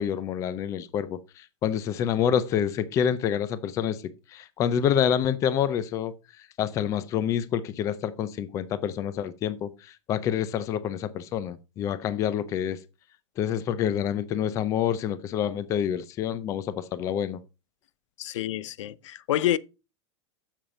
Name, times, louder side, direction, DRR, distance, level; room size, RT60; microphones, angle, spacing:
voice 1, 0.0-4.0 4.3-6.1 6.6-12.8 13.4-17.4, left 9 dB, 20° left, 0.5 m, -27 dB
voice 2, 18.2-19.6, left 12 dB, 90° left, 0.6 m, -27 dB
7.4 x 7.1 x 5.1 m
supercardioid pair, 175°, 15 cm